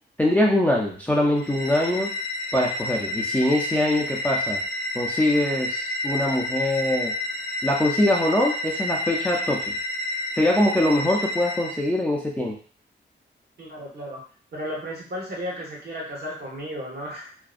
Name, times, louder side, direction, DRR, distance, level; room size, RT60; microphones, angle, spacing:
voice 1, 0.2-2.1 2.5-4.6 4.9-7.1 7.6-9.7 10.4-12.5, left 1 dB, 5° left, -3 dB, 0.4 m, -23 dB
sound 1, 1.4-11.9, left 1 dB, 45° left, 0.7 m, -30 dB
voice 2, 13.6-14.2 14.5-17.3, equal, 55° right, -2 dB, 0.9 m, -34 dB
2.5 x 2.0 x 2.4 m, 0.43 s
wide cardioid pair, 120°, 20 cm